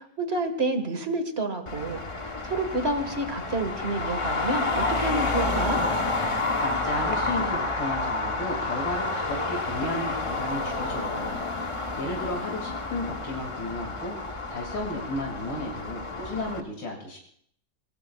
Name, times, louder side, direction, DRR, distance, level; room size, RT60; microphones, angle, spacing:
voice 1, 0.0-5.8, right 2 dB, 35° right, 8 dB, 1.7 m, -29 dB
Traffic noise roadway noise, 1.7-16.6, left 3 dB, 40° left, 0.4 m, -29 dB
voice 2, 6.6-11.4 12.0-17.2, left 1 dB, 75° left, -1 dB, 3.0 m, -34 dB
28.0 x 18.0 x 2.3 m, 0.64 s
omnidirectional pair, 2.0 m